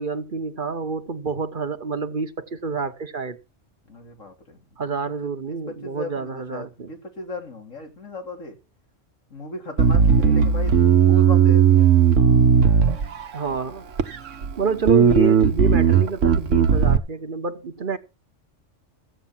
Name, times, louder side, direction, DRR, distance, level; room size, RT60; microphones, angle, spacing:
voice 1, 0.0-3.4 4.8-7.0 13.3-13.9 14.6-18.0, right 4 dB, 45° right, 1.1 m, -28 dB
voice 2, 3.9-4.6 5.5-5.6 5.8-8.5 9.3-11.9 14.7-15.0, left 1 dB, 90° left, 3.7 m, -36 dB
Bass guitar, 9.8-13.4 14.0-14.5 14.9-17.0, right 7 dB, 75° right, 1.3 m, -16 dB
14.5 x 8.5 x 5.9 m
omnidirectional pair, 1.3 m